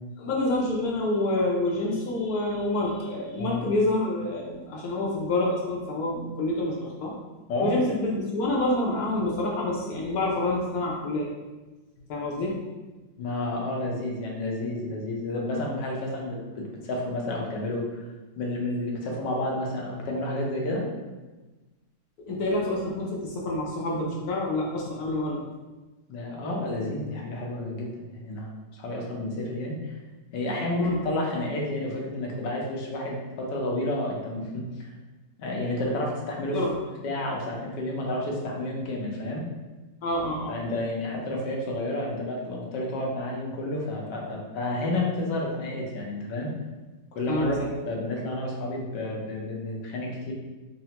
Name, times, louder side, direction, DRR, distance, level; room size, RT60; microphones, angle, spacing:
voice 1, 0.2-7.1 7.6-11.3 12.1-12.6 22.3-25.4 30.8-31.0 36.5-36.7 40.0-40.6 47.3-47.8, left 2 dB, 70° left, -3 dB, 1.0 m, -27 dB
voice 2, 13.2-18.1 18.4-20.8 26.1-30.0 30.3-34.9 35.4-36.6 37.0-39.4 40.5-46.5 47.1-50.3, left 1 dB, 90° left, -2 dB, 1.3 m, -30 dB
4.1 x 2.1 x 2.8 m, 1.2 s
omnidirectional pair, 1.8 m